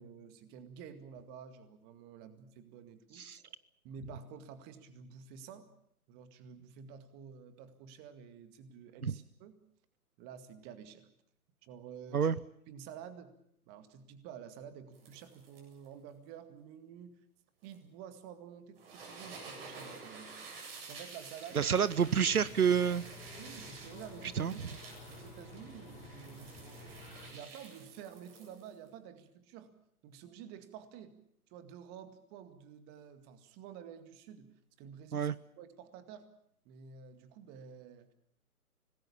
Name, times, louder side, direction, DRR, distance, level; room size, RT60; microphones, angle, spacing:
voice 1, 0.0-3.5 3.8-5.7 6.1-9.6 10.2-11.1 11.6-12.3 12.7-13.4 13.7-17.2 17.6-20.3 20.9-21.8 23.4-24.6 25.1-27.0 27.3-29.7 30.0-31.1 31.5-36.3 36.6-38.1, right 7 dB, 20° right, 10 dB, 2.1 m, -50 dB
sound 1, 14.9-15.9 17.6-17.8 18.8-28.9, right 4 dB, 40° right, 8.0 m, -51 dB
voice 2, 21.5-23.0 24.4-24.5 35.1-35.3, right 7 dB, 75° right, 19 dB, 0.9 m, -28 dB
sound 2, 21.6-27.3, left 2 dB, 15° left, 5.0 m, -51 dB
26.0 x 19.5 x 7.1 m, 0.70 s
figure-of-eight pair, 135°, 45 cm